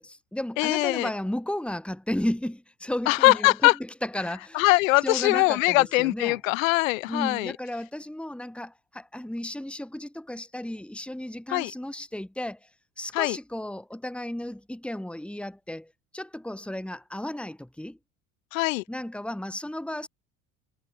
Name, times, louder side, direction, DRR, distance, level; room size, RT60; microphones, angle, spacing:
voice 1, 0.0-3.7 4.0-4.6 5.0-6.4 7.1-12.7 13.0-18.0 18.9-20.1, left 1 dB, 5° left, 3.1 m, -34 dB
voice 2, 0.6-1.1 3.1-3.7 4.5-7.5 11.5-11.7 13.1-13.4 18.5-18.8, left 22 dB, 80° left, 1.6 m, -22 dB
hypercardioid pair, 75°, 39 cm